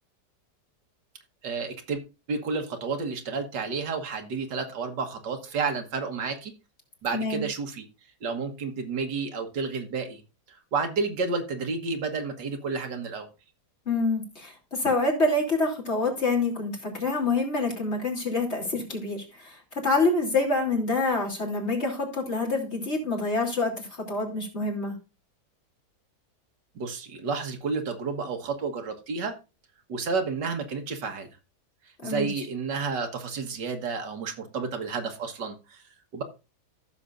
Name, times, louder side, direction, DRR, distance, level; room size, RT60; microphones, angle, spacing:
voice 1, 1.4-2.0 2.3-6.5 7.0-7.9 8.2-10.2 10.5-13.3 26.8-29.3 29.9-31.3 32.0-35.8 36.1-36.2, right 4 dB, 85° right, 5 dB, 2.0 m, -31 dB
voice 2, 7.1-7.4 13.8-24.9 32.0-32.3, left 3 dB, 40° left, -1 dB, 3.3 m, -27 dB
15.0 x 6.9 x 2.5 m, 0.30 s
omnidirectional pair, 1.8 m